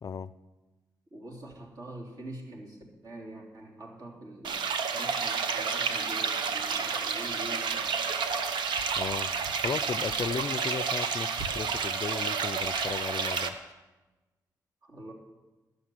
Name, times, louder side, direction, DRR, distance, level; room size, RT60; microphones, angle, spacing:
voice 1, 0.0-0.3 9.0-9.3 9.6-13.5, left 6 dB, 50° left, 17 dB, 0.4 m, -35 dB
voice 2, 1.1-8.0 14.8-15.1, right 1 dB, 55° right, -1 dB, 3.1 m, -44 dB
sound 1, 4.4-13.5, right 5 dB, 85° right, 0.8 m, -30 dB
12.5 x 6.6 x 7.7 m, 1.2 s
cardioid pair, 55°, 8 cm